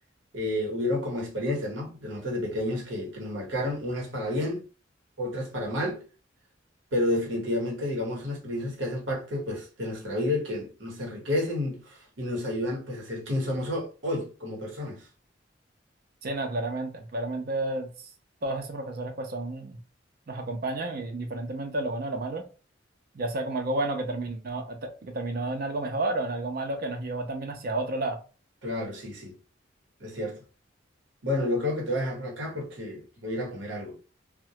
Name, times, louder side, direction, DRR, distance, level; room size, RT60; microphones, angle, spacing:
voice 1, 0.3-4.6 5.2-6.0 6.9-15.1 28.6-29.4 30.0-30.4 31.2-33.9, left 1 dB, 80° right, 1.0 m, -30 dB
voice 2, 16.2-17.9 18.4-19.8 20.3-22.5 23.1-28.2, right 2 dB, 55° right, 0.6 m, -31 dB
2.1 x 2.1 x 2.7 m
head